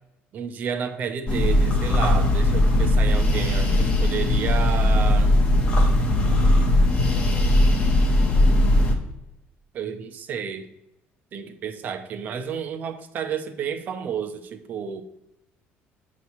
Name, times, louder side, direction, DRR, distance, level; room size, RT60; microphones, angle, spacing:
voice 1, 0.3-5.4 9.7-10.7 11.3-15.0, right 7 dB, 40° right, 8 dB, 0.6 m, -31 dB
sound 1, 1.3-8.9, left 1 dB, 25° left, 0.9 m, -19 dB
8.3 x 3.0 x 5.6 m, 0.90 s
cardioid pair, 170°, 4 cm